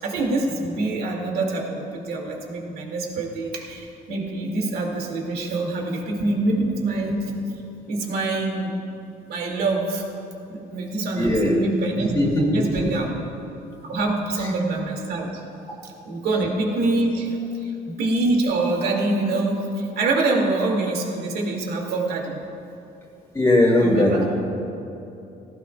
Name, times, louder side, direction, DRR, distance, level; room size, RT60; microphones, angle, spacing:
voice 1, 0.0-7.3 7.9-8.8 9.3-10.0 10.5-12.1 12.5-13.1 13.8-15.4 15.8-22.4 23.8-24.3, right 2 dB, 65° right, 0 dB, 2.2 m, -25 dB
voice 2, 11.2-11.6 12.0-12.7 14.4-14.5 23.3-24.3, left 1 dB, 15° left, -5 dB, 2.4 m, -19 dB
17.5 x 16.0 x 2.3 m, 2.8 s
cardioid pair, 110°, 17 cm